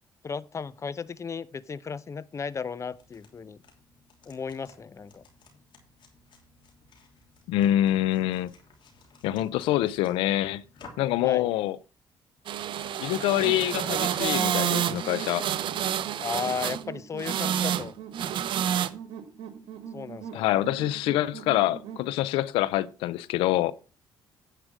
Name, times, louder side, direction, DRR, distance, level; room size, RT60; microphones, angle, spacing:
voice 1, 0.2-3.6 4.3-5.2 11.2-11.5 16.2-17.9 19.9-20.5, left 5 dB, 35° left, 0.6 m, -35 dB
sound 1, 2.9-11.2, left 3 dB, 65° left, 3.1 m, -55 dB
voice 2, 7.5-8.5 9.2-10.6 11.0-11.8 13.0-15.5 20.3-23.7, left 14 dB, 90° left, 0.5 m, -25 dB
sound 2, 12.5-16.8 17.2-17.9 18.1-18.9, right 10 dB, 65° right, 0.7 m, -28 dB
sound 3, 13.4-22.1, right 8 dB, 85° right, 1.4 m, -42 dB
10.0 x 5.0 x 6.1 m
cardioid pair, 75°, 9 cm